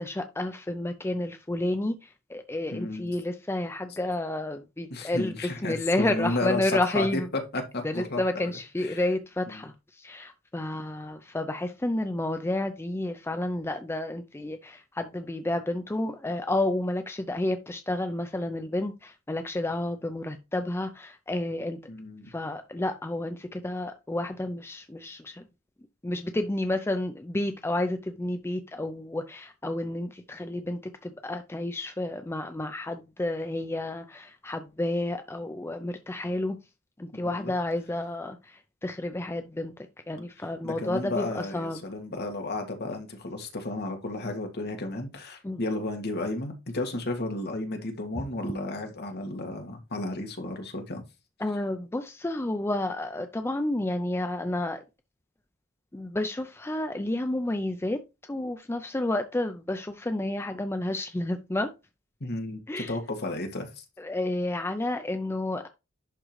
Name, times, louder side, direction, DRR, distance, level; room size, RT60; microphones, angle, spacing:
voice 1, 0.0-5.3 5.6-7.3 7.8-21.8 22.3-25.5 26.0-36.6 37.0-41.8 45.4-45.6 51.4-54.8 55.9-58.0 58.3-61.7 62.7-63.0 64.0-65.7, left 1 dB, 10° left, 0.5 m, -30 dB
voice 2, 2.7-3.1 4.9-8.5 8.8-9.0 9.5-9.6 21.9-22.3 37.1-37.5 40.6-51.0 62.2-63.8, left 2 dB, 55° left, 1.8 m, -33 dB
11.0 x 3.7 x 3.1 m
head